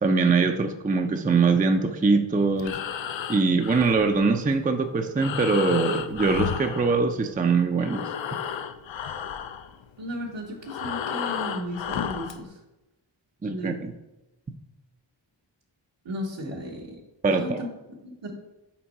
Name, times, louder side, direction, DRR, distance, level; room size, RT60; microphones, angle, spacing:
voice 1, 0.0-2.8 3.3-8.1 13.4-13.9 17.2-17.6, right 4 dB, 20° right, 6 dB, 0.4 m, -22 dB
Breathing, 2.5-7.5 7.7-12.4, left 8 dB, 85° left, 0.5 m, -33 dB
voice 2, 10.0-12.6 13.5-13.8 16.0-17.0 17.3-17.7 18.0-18.3, equal, 75° right, -2 dB, 1.1 m, -35 dB
5.9 x 4.5 x 4.1 m, 1.0 s
wide cardioid pair, 70°, 44 cm